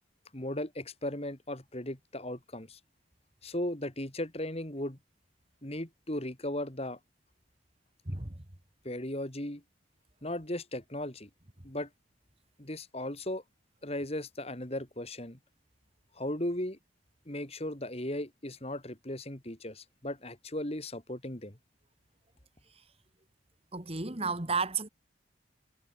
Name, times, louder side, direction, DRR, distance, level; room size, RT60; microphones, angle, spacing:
voice 1, 0.3-2.8 3.4-5.0 5.6-7.0 8.8-9.6 10.2-11.3 11.6-11.9 12.6-13.4 13.8-15.4 16.1-16.8 17.3-21.6, left 1 dB, 30° left, 2.8 m, -36 dB
voice 2, 8.1-8.4 22.7-22.8 23.7-24.9, right 4 dB, 30° right, 2.1 m, -33 dB
head